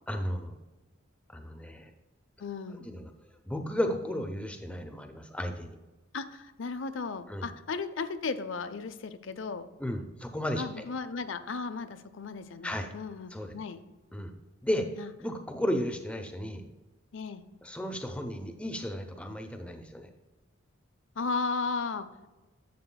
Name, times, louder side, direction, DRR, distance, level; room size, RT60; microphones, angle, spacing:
voice 1, 0.1-0.5 1.3-1.9 2.7-3.1 3.4-5.8 7.3-7.5 9.8-10.6 12.6-12.9 13.3-13.5 14.1-14.3 14.6-14.9 15.2-16.6 17.6-20.1, left 1 dB, 5° left, 5 dB, 0.6 m, -34 dB
voice 2, 2.4-2.9 6.1-9.7 10.5-13.8 15.0-15.1 17.1-17.4 21.2-22.1, left 4 dB, 65° left, 11 dB, 0.6 m, -35 dB
11.0 x 7.6 x 2.2 m, 1.1 s
head